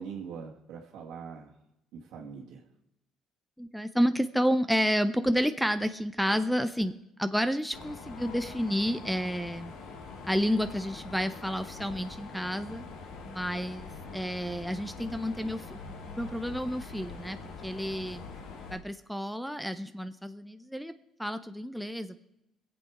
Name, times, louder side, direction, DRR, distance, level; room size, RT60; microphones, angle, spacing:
voice 1, 0.0-1.5 1.9-2.6, right 6 dB, 80° right, -2 dB, 1.6 m, -42 dB
voice 2, 3.6-6.9 7.2-9.7 10.2-12.8 13.3-15.8 16.1-17.4 17.6-18.2 18.7-20.9 21.2-22.2, equal, ahead, 12 dB, 0.5 m, -30 dB
Mechanisms, 7.7-18.8, left 4 dB, 75° left, 2.3 m, -44 dB
22.5 x 7.8 x 4.7 m, 0.86 s
cardioid pair, 130°, 0 cm